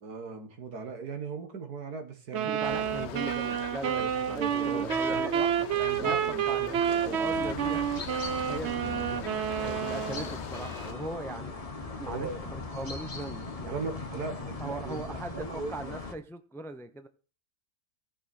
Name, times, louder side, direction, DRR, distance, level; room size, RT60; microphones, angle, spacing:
voice 1, 0.0-3.0 3.8-7.6 8.7-9.4 12.1-12.4 13.6-16.0, right 4 dB, 85° right, 2.1 m, -39 dB
voice 2, 2.3-5.5 6.0-7.8 8.4-11.5 12.0-14.0 14.6-17.1, right 2 dB, 5° left, 0.5 m, -40 dB
sound 1, 2.3-10.3, right 9 dB, 60° right, 0.8 m, -29 dB
sound 2, 2.6-10.9, left 9 dB, 60° left, 0.8 m, -42 dB
sound 3, 7.3-16.1, left 3 dB, 25° left, 1.1 m, -39 dB
17.5 x 6.2 x 4.3 m
omnidirectional pair, 1.6 m